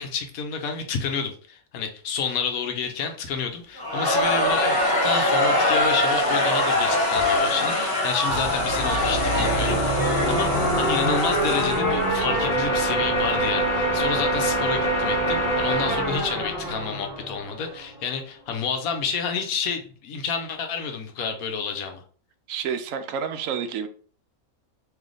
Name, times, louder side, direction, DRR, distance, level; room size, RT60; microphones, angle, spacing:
voice 1, 0.0-22.0, left 5 dB, 80° left, 5 dB, 1.2 m, -29 dB
Crowd, 3.8-11.0, left 1 dB, 15° left, 1.2 m, -23 dB
sound 1, 4.2-13.2, left 4 dB, 60° left, 0.9 m, -33 dB
sound 2, 8.3-17.8, right 1 dB, 40° left, 1.1 m, -25 dB
voice 2, 22.5-23.9, right 7 dB, 70° right, 8 dB, 0.9 m, -29 dB
3.2 x 2.9 x 3.8 m, 0.43 s
omnidirectional pair, 1.5 m